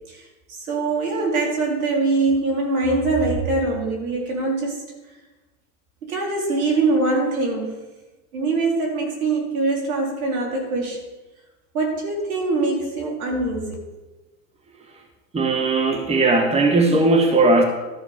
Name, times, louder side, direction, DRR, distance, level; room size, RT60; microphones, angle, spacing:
voice 1, 0.7-4.8 6.0-7.7 8.3-11.0 11.7-13.7, right 3 dB, 75° right, 0 dB, 3.8 m, -23 dB
voice 2, 15.3-17.6, right 2 dB, 15° right, 4 dB, 1.3 m, -18 dB
13.0 x 6.7 x 5.1 m, 1.1 s
hypercardioid pair, 95°, 43 cm